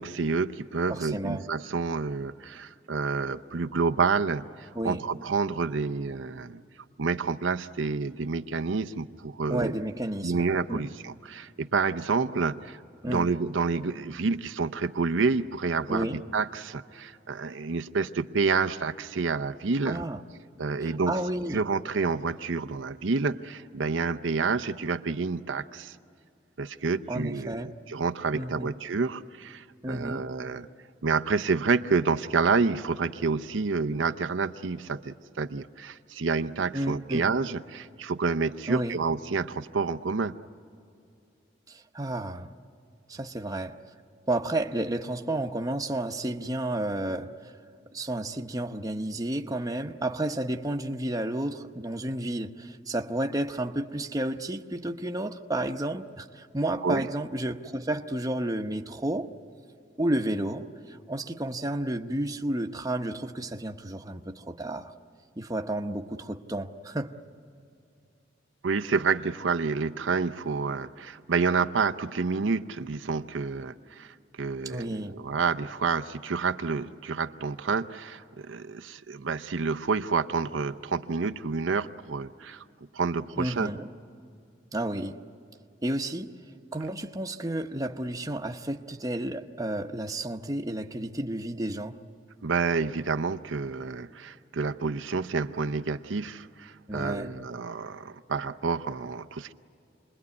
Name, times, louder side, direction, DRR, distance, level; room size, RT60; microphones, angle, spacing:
voice 1, 0.0-6.6 7.0-9.7 10.2-12.8 13.0-20.0 20.6-21.2 21.5-26.0 26.6-30.7 31.0-40.4 56.8-57.0 68.6-82.6 82.9-83.7 92.4-99.5, right 4 dB, 85° right, 9 dB, 0.7 m, -29 dB
voice 2, 0.9-1.4 4.8-5.0 9.5-10.8 13.0-13.3 15.9-16.2 19.8-20.2 20.8-21.6 27.1-27.7 28.3-28.7 29.8-30.2 36.7-37.2 38.7-39.0 41.7-42.5 43.1-43.8 44.3-47.5 47.9-59.3 60.0-64.9 65.4-67.1 74.6-75.2 83.4-83.9 84.7-85.2 85.8-86.3 86.7-92.0 96.9-97.3, right 1 dB, 20° right, 4 dB, 0.9 m, -31 dB
28.0 x 21.0 x 9.6 m, 2.5 s
head